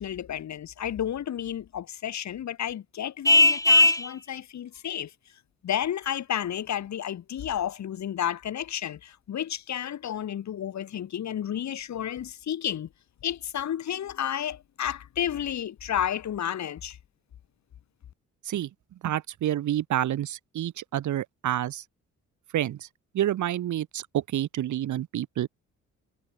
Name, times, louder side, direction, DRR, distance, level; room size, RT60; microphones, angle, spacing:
voice 1, 0.0-5.1 5.6-12.9 13.2-17.0, left 10 dB, 65° left, 6.3 m, -31 dB
Vehicle horn car horn honking, 3.2-4.1, left 2 dB, 10° left, 2.5 m, -18 dB
voice 2, 19.0-21.8 22.5-22.9 23.1-25.5, right 12 dB, 75° right, 4.2 m, -28 dB
cardioid pair, 90°, 30 cm